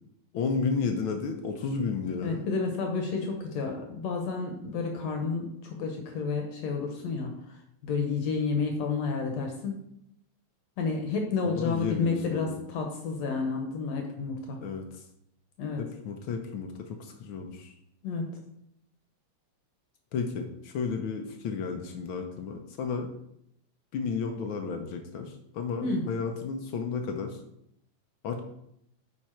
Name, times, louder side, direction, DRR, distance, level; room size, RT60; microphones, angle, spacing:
voice 1, 0.3-2.5 11.4-12.6 14.6-15.0 15.8-17.8 20.1-23.1 23.9-27.4 28.2-28.4, left 5 dB, 85° left, 4 dB, 1.1 m, -32 dB
voice 2, 2.2-7.6 7.8-9.7 10.8-14.6 15.6-15.8 18.0-18.3 25.8-26.0, left 4 dB, 70° left, 3 dB, 2.0 m, -30 dB
9.5 x 4.5 x 4.4 m, 0.77 s
omnidirectional pair, 3.3 m